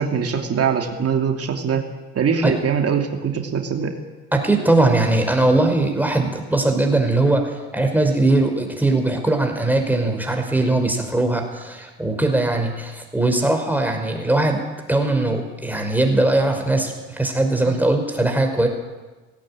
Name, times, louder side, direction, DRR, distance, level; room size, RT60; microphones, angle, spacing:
voice 1, 0.0-1.8 2.1-3.9 17.7-17.8, right 6 dB, 40° right, 4 dB, 2.9 m, -22 dB
voice 2, 4.3-14.6 14.9-18.7, right 2 dB, 5° right, 3 dB, 5.4 m, -20 dB
18.5 x 16.5 x 9.0 m, 1.2 s
hypercardioid pair, 65°, 37 cm